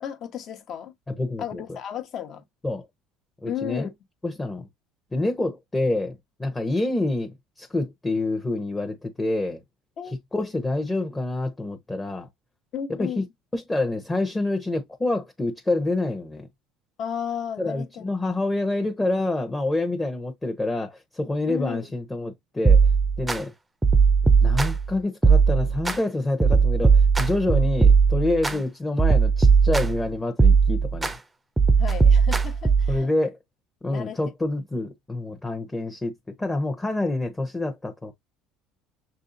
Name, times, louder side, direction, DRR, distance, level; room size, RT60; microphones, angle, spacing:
voice 1, 0.0-0.9 1.4-2.4 3.5-3.9 10.0-10.2 12.7-13.3 17.0-18.0 18.4-18.5 21.5-21.9 28.5-28.6 31.8-33.1 33.9-34.2, left 9 dB, 50° left, 1.1 m, -34 dB
voice 2, 1.1-1.6 2.6-2.9 3.4-3.9 4.2-4.7 5.1-9.6 10.0-12.3 13.0-13.2 13.5-16.5 17.6-22.8 23.2-23.5 24.4-31.2 32.9-33.4 33.8-36.1 36.4-38.1, left 2 dB, 15° left, 0.9 m, -27 dB
sound 1, 22.7-23.4 23.8-24.9 25.2-26.0 26.4-28.6 29.0-30.0 30.4-31.1 31.6-33.0, right 5 dB, 15° right, 0.5 m, -18 dB
6.5 x 2.6 x 2.6 m
supercardioid pair, 105°, 0 cm